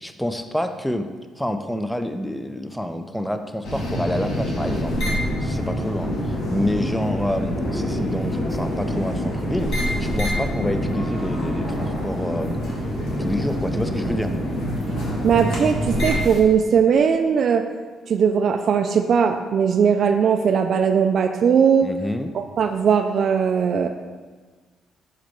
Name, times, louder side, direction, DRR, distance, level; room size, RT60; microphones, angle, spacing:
voice 1, 0.0-1.1 1.4-5.0 5.4-12.6 13.2-14.3 21.8-22.3, left 1 dB, 5° left, 8 dB, 0.5 m, -28 dB
sound 1, 3.6-16.4, equal, 75° left, 2.0 m, -25 dB
voice 2, 15.2-17.6 18.1-21.9 22.6-23.9, right 7 dB, 60° right, 6 dB, 0.3 m, -19 dB
5.6 x 4.9 x 4.5 m, 1.4 s
cardioid pair, 90°, 0 cm